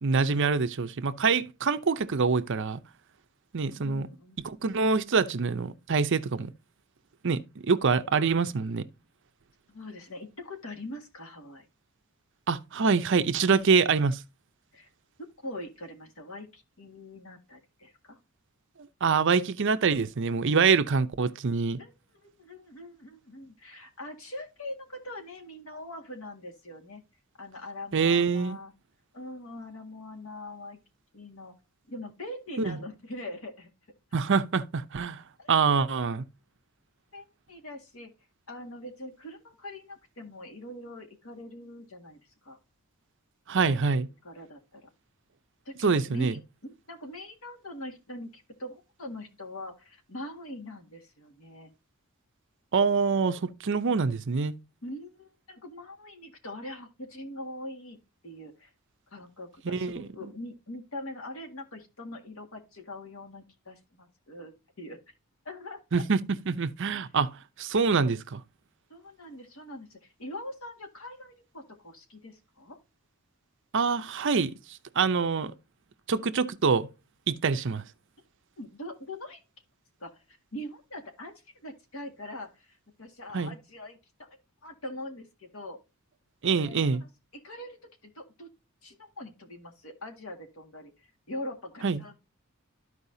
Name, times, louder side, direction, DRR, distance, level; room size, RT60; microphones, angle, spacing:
voice 1, 0.0-2.8 3.5-4.1 4.4-6.5 7.2-7.4 7.7-8.8 12.5-14.2 19.0-21.8 27.9-28.6 32.7-32.8 34.1-35.2 35.5-36.2 43.5-44.1 45.8-46.3 52.7-54.5 59.7-60.1 65.9-66.2 66.5-67.3 67.6-68.4 73.7-74.5 75.0-75.5 76.1-76.9 77.3-77.8 83.3-83.5 86.4-87.0 91.8-92.0, right 5 dB, 55° right, 0.6 m, -25 dB
voice 2, 3.7-4.4 9.7-11.6 14.7-14.9 15.4-18.2 21.8-21.9 22.2-27.0 27.4-28.7 29.1-30.8 31.1-31.5 31.9-33.7 35.4-35.5 37.1-38.1 38.5-42.6 43.6-43.8 44.2-44.9 45.6-51.7 54.8-58.0 58.2-58.7 59.1-64.5 64.8-65.0 65.4-66.0 66.9-67.1 68.9-72.8 78.6-79.4 80.0-84.4 84.6-85.8 86.6-88.5 88.8-92.1, left 1 dB, 70° left, 1.9 m, -42 dB
13.5 x 4.8 x 2.7 m
head